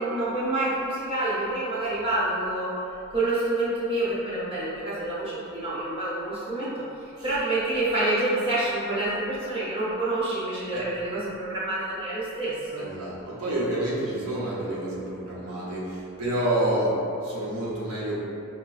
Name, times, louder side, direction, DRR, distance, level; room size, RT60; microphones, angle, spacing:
voice 1, 0.0-2.7 3.1-6.8 7.2-12.8, right 2 dB, 25° right, -10 dB, 0.7 m, -27 dB
voice 2, 12.8-18.2, right 1 dB, 75° right, -8 dB, 0.9 m, -28 dB
5.1 x 2.2 x 2.3 m, 2.7 s
head